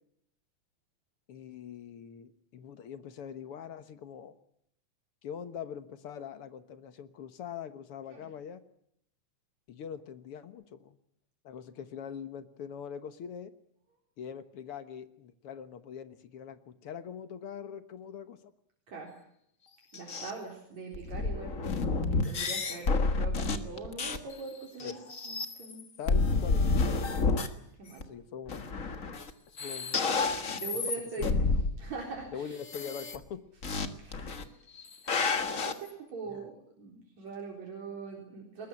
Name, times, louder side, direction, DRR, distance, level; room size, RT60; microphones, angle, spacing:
voice 1, 1.3-4.3 5.2-8.6 9.7-11.0 11.4-13.5 14.2-18.5 24.8-25.0 26.0-26.7 28.1-28.7 29.6-30.1 31.2-31.3 32.3-33.4 36.3-36.5, left 8 dB, 60° left, 11 dB, 1.8 m, -43 dB
sound 1, 19.9-20.3 20.9-24.3 24.8-25.8 26.1-27.5 28.0-28.1 28.5-29.3 29.6-31.7 32.6-33.2 33.6-33.9 34.1-34.4 34.8-35.7, left 3 dB, 35° left, 1.4 m, -29 dB
voice 2, 19.9-25.0 25.3-25.8 27.1-27.2 27.8-28.0 30.5-31.3 31.8-32.6 34.0-34.5 35.0-38.7, right 4 dB, 65° right, 0 dB, 5.3 m, -42 dB
21.0 x 20.0 x 9.9 m, 0.74 s
omnidirectional pair, 3.4 m